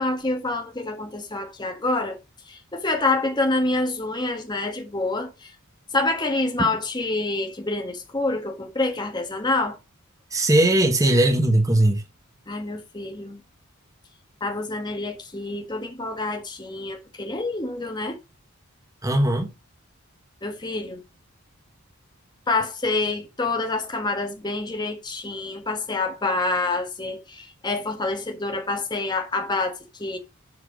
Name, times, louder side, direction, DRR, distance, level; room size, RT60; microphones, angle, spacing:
voice 1, 0.0-2.2 2.5-5.5 5.9-9.8 12.5-13.4 14.4-18.2 20.4-21.0 22.5-30.2, left 2 dB, 20° left, 1.5 m, -27 dB
voice 2, 10.3-12.0 19.0-19.5, right 1 dB, 15° right, 1.4 m, -19 dB
8.2 x 4.7 x 5.0 m
head